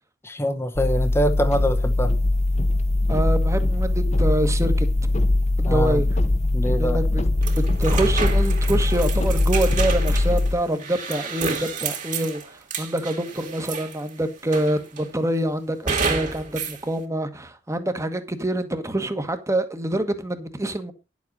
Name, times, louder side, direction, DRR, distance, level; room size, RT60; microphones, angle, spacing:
voice 1, 0.2-2.1 5.6-6.0 6.5-7.0, equal, 15° left, 0.9 m, -24 dB
sound 1, 0.8-10.5, left 2 dB, 40° left, 1.1 m, -21 dB
voice 2, 3.1-4.9 5.6-6.1 6.8-20.9, right 1 dB, 15° right, 1.3 m, -26 dB
sound 2, 7.4-14.1 14.5-15.1 15.9-16.8, right 4 dB, 50° right, 2.6 m, -30 dB
10.5 x 7.4 x 5.3 m
head